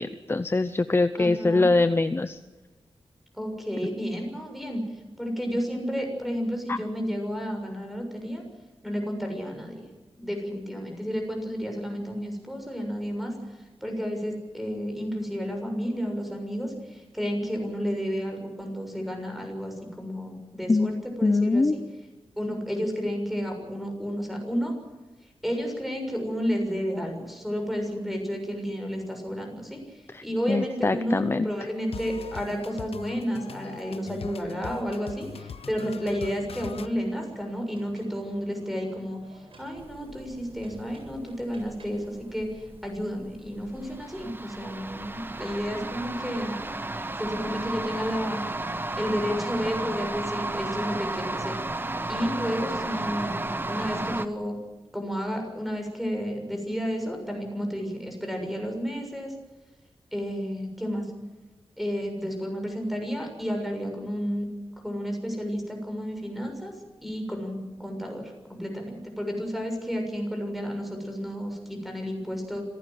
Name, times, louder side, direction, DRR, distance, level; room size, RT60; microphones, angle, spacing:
voice 1, 0.0-2.4 6.7-6.8 20.7-21.8 30.1-31.5, left 3 dB, 25° left, 12 dB, 0.7 m, -24 dB
voice 2, 1.2-1.7 3.3-4.8 5.2-8.4 8.8-9.9 10.2-13.3 13.8-21.8 22.4-24.7 25.4-46.5 47.2-48.5 48.9-51.5 52.1-53.4 53.7-54.6 54.9-59.3 60.1-61.1 61.8-64.5 64.8-66.7 67.0-72.6, equal, ahead, 3 dB, 6.7 m, -31 dB
sound 1, 31.9-36.9, left 7 dB, 90° left, 0.9 m, -42 dB
sound 2, 34.6-42.7, right 1 dB, 65° right, 8.0 m, -52 dB
sound 3, 39.8-54.3, right 2 dB, 20° right, 1.0 m, -33 dB
26.0 x 17.0 x 7.6 m, 1.2 s
wide cardioid pair, 115°, 10 cm